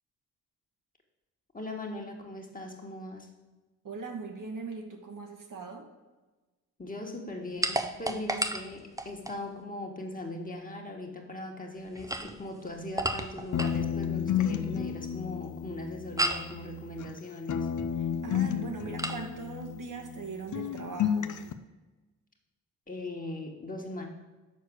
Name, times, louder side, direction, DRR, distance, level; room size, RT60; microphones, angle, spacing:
voice 1, 1.5-3.3 6.8-17.7 22.9-24.1, left 1 dB, 20° left, 1 dB, 1.7 m, -39 dB
voice 2, 3.8-5.9 18.0-21.4, right 4 dB, 60° right, 2 dB, 1.5 m, -40 dB
sound 1, 7.6-9.4 11.9-13.8 16.2-16.5 19.0-19.2, right 1 dB, 10° right, 0.7 m, -32 dB
sound 2, 13.5-17.2 17.5-20.3 20.5-21.5, left 8 dB, 55° left, 0.6 m, -32 dB
6.7 x 4.7 x 6.4 m, 1.2 s
supercardioid pair, 55°, 36 cm